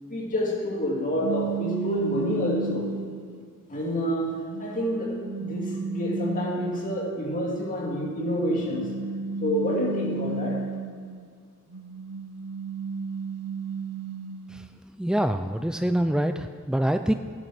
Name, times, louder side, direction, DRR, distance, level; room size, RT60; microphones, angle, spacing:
voice 1, 0.1-2.9 3.7-8.9 9.4-10.6, equal, 35° left, -3 dB, 2.3 m, -28 dB
sound 1, 1.2-3.4 4.0-7.2 8.3-11.3 11.7-14.7, right 4 dB, 80° right, 0.5 m, -33 dB
voice 2, 15.0-17.1, right 1 dB, 5° right, 8 dB, 0.3 m, -25 dB
13.0 x 10.5 x 6.0 m, 2.1 s
head